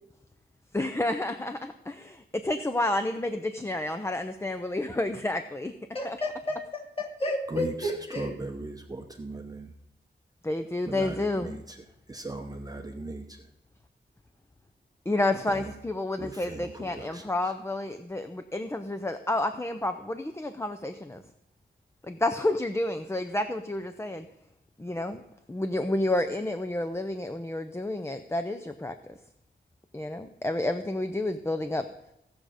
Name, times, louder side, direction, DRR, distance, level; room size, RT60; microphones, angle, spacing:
voice 1, 0.7-5.7 6.0-6.2 10.4-11.6 15.1-21.2 22.0-24.3 24.8-25.2 25.5-28.9 29.9-31.8, left 2 dB, 15° left, 8 dB, 0.5 m, -30 dB
voice 2, 5.9-8.3, left 1 dB, 30° left, -4 dB, 2.8 m, -32 dB
voice 3, 7.5-9.7 10.8-13.4 15.5-15.7 16.2-17.5, right 2 dB, 20° right, 3 dB, 0.8 m, -38 dB
16.5 x 6.4 x 5.0 m, 0.87 s
wide cardioid pair, 125°, 19 cm